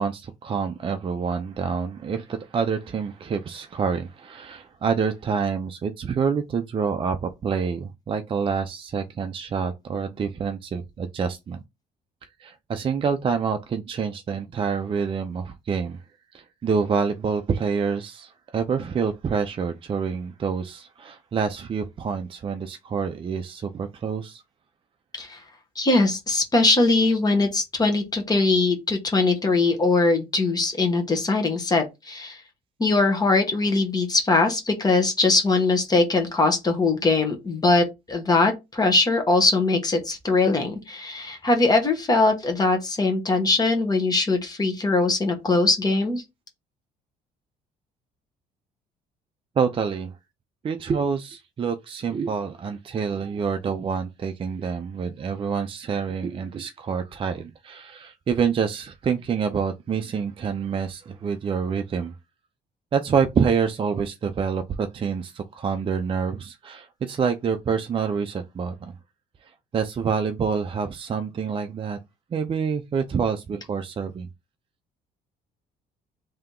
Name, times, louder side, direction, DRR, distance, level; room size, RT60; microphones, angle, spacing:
voice 1, 0.0-11.6 12.4-16.0 16.3-24.4 49.6-50.1 50.6-62.1 62.9-68.9 69.4-72.0 72.3-74.3, right 6 dB, 30° right, 0.5 m, -27 dB
voice 2, 25.8-32.4 32.8-46.2, left 3 dB, 25° left, 1.2 m, -21 dB
3.5 x 2.8 x 3.7 m
cardioid pair, 110°, 17 cm